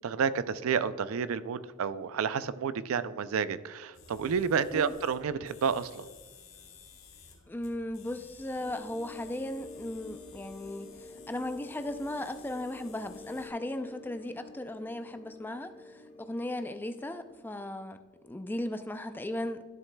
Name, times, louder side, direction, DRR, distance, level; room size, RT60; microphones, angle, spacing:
voice 1, 0.0-6.1, right 6 dB, 75° right, 15 dB, 0.4 m, -30 dB
sound 1, 3.9-13.5, left 5 dB, 65° left, 1.3 m, -55 dB
voice 2, 7.5-18.0 18.2-19.6, left 1 dB, 10° left, 8 dB, 0.4 m, -37 dB
sound 2, 8.6-17.8, left 2 dB, 40° left, 1.1 m, -49 dB
12.0 x 7.1 x 2.2 m, 1.5 s
head